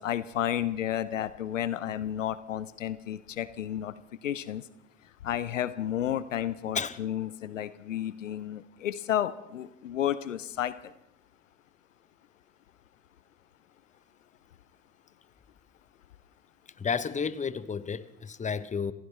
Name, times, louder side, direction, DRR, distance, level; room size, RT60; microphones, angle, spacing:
voice 1, 0.0-3.9 4.2-4.6 5.2-10.9, left 11 dB, 85° left, 0.6 m, -32 dB
voice 2, 16.8-18.9, left 6 dB, 20° left, 0.9 m, -31 dB
26.5 x 16.0 x 3.3 m
figure-of-eight pair, 60°, 37 cm